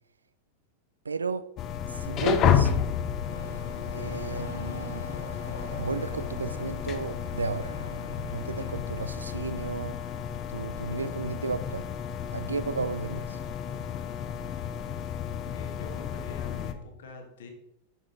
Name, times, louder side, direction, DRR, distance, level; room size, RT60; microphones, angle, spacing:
voice 1, 1.1-1.5 1.9-2.7 3.9-5.1 5.8-7.8 8.3-10.0 10.5-11.9 12.3-13.4, right 4 dB, 75° right, 0.3 m, -33 dB
sound 1, 1.6-16.7, left 8 dB, 35° left, 0.6 m, -31 dB
Chatter / Car passing by / Motorcycle, 3.3-9.2, equal, 80° left, 1.0 m, -42 dB
voice 2, 15.5-17.5, left 4 dB, 60° left, 1.3 m, -45 dB
7.0 x 6.7 x 3.8 m
figure-of-eight pair, 90°, 0 cm